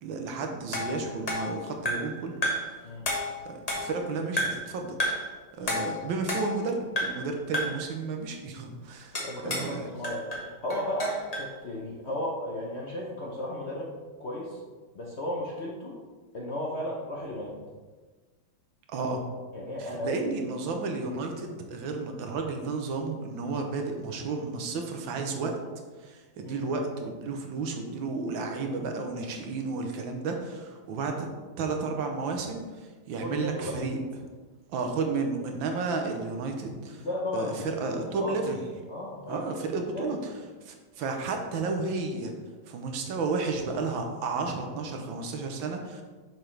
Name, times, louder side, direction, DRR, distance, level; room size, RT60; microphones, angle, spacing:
voice 1, 0.0-2.4 3.5-5.2 5.6-9.9 18.9-19.2 19.8-25.6 26.0-31.3 31.6-34.0 34.7-37.1 37.3-38.7 39.3-40.3 40.6-42.3 42.7-46.0, right 4 dB, 75° right, 3 dB, 1.6 m, -32 dB
sound 1, 0.7-2.2 2.4-2.8 3.1-4.0 4.4-4.7 5.0-5.3 5.7-6.7 7.0-7.3 7.5-7.9 9.2-9.8 10.0-11.5, left 1 dB, 25° left, 0.9 m, -31 dB
voice 2, 9.1-13.9 14.2-14.6 14.9-16.0 16.3-17.5 19.5-20.1 26.4-26.7 33.2-33.8 37.0-38.3 38.9-39.4 39.9-40.1, left 1 dB, 55° left, -3 dB, 0.8 m, -34 dB
6.9 x 5.9 x 3.3 m, 1.4 s
omnidirectional pair, 2.2 m